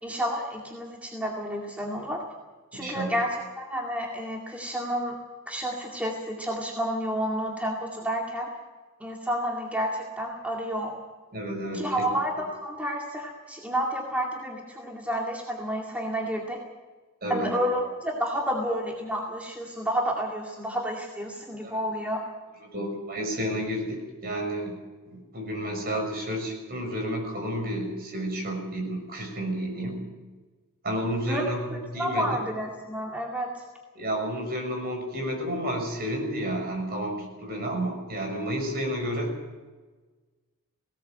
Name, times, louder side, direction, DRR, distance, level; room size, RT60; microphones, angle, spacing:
voice 1, 0.0-2.2 2.7-5.2 5.5-8.5 9.0-11.0 11.7-16.6 17.3-22.2 31.3-31.4 31.7-33.6, equal, 5° right, -1 dB, 2.3 m, -30 dB
voice 2, 2.7-3.1 11.3-12.0 17.2-17.5 21.6-21.8 22.7-24.7 25.0-30.0 30.8-32.4 33.9-39.3, equal, 45° right, 2 dB, 6.3 m, -31 dB
19.0 x 18.0 x 7.7 m, 1.3 s
head